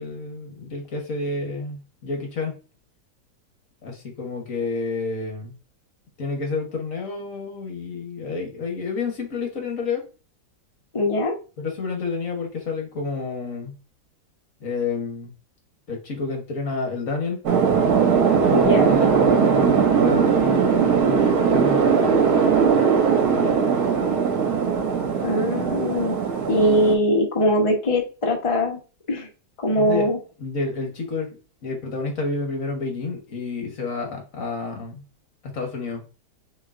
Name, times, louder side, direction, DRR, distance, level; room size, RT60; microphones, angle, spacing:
voice 1, 0.0-2.5 3.8-5.6 6.2-10.0 11.6-13.8 14.6-15.3 15.9-17.4 18.3-22.9 23.2-23.6 29.8-30.1 30.4-31.4 31.6-35.0 35.4-36.1, left 4 dB, 50° left, 2 dB, 1.5 m, -30 dB
voice 2, 10.9-11.3 18.5-18.9 25.2-26.2 26.5-28.8 29.1-29.3 29.6-30.2, left 1 dB, 25° left, 1 dB, 0.7 m, -21 dB
sound 1, 17.5-27.0, right 6 dB, 65° right, 1.5 m, -19 dB
6.5 x 3.2 x 2.5 m, 0.34 s
omnidirectional pair, 1.9 m